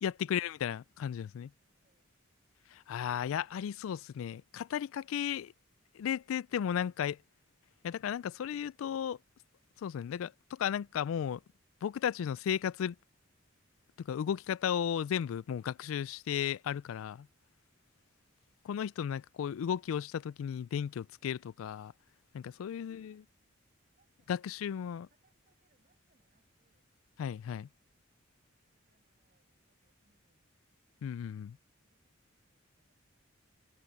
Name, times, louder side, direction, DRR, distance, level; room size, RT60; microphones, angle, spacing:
voice 1, 0.0-1.5 2.7-5.5 5.9-7.2 7.8-9.2 9.8-11.4 11.8-13.0 14.0-17.3 18.6-21.9 22.3-23.2 24.3-25.1 27.2-27.7 31.0-31.6, left 8 dB, 85° left, 0.3 m, -35 dB
voice 2, 1.7-2.1 4.9-5.2 22.5-23.3 23.9-26.9 28.7-30.6 31.8-33.1, right 2 dB, 40° right, 6.3 m, -77 dB
head